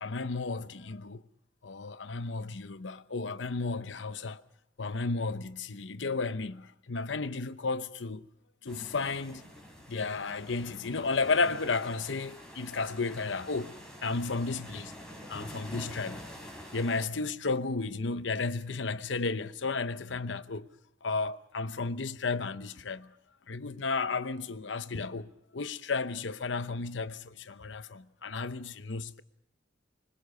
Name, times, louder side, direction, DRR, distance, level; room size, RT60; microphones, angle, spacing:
voice 1, 0.0-1.2 1.6-4.4 4.8-8.3 8.6-9.4 9.9-13.7 14.0-14.9 15.3-16.3 16.7-20.7 21.0-23.1 23.5-29.2, left 4 dB, 75° left, 0.9 m, -33 dB
sound 1, 8.7-17.1, equal, 5° left, 3.9 m, -47 dB
25.0 x 21.5 x 6.6 m
head